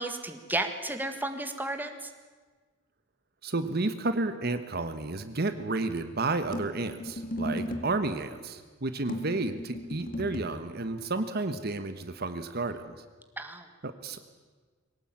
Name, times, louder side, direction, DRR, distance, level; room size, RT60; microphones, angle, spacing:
voice 1, 0.0-2.0 13.4-13.6, right 2 dB, 10° right, 6 dB, 1.8 m, -33 dB
voice 2, 3.4-12.9 13.8-14.2, right 2 dB, 55° right, 10 dB, 1.3 m, -31 dB
sound 1, 6.5-8.0 9.1-10.6, equal, 45° left, 2.3 m, -36 dB
22.5 x 18.0 x 8.8 m, 1.4 s
head